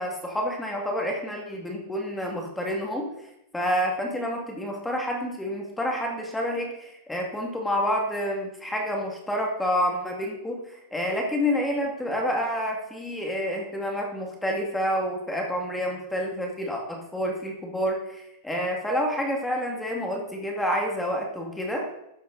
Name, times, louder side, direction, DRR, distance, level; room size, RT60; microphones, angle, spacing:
voice 1, 0.0-3.1 3.5-21.9, equal, 5° left, 0 dB, 2.4 m, -28 dB
13.5 x 8.4 x 4.1 m, 0.82 s
supercardioid pair, 130°, 0 cm